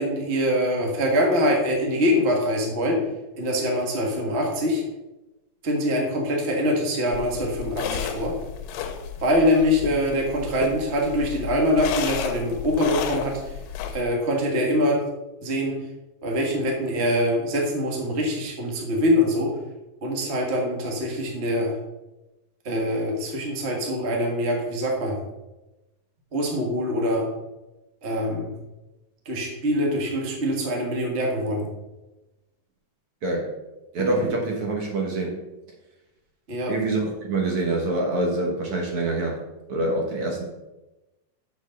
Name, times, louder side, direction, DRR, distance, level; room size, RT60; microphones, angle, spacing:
voice 1, 0.0-3.0 3.4-4.8 5.6-8.3 9.2-13.4 13.9-15.0 15.4-15.7 16.2-19.5 20.0-21.7 22.6-25.2 26.3-27.2 28.0-28.5 29.2-31.7 36.5-36.8, equal, 85° right, -1 dB, 0.5 m, -24 dB
sound 1, 7.1-14.0, left 8 dB, 85° left, 2.5 m, -32 dB
voice 2, 33.9-35.4 36.7-39.3 39.7-40.4, right 2 dB, 60° right, 0 dB, 1.5 m, -25 dB
6.7 x 6.1 x 6.3 m, 1.0 s
omnidirectional pair, 4.0 m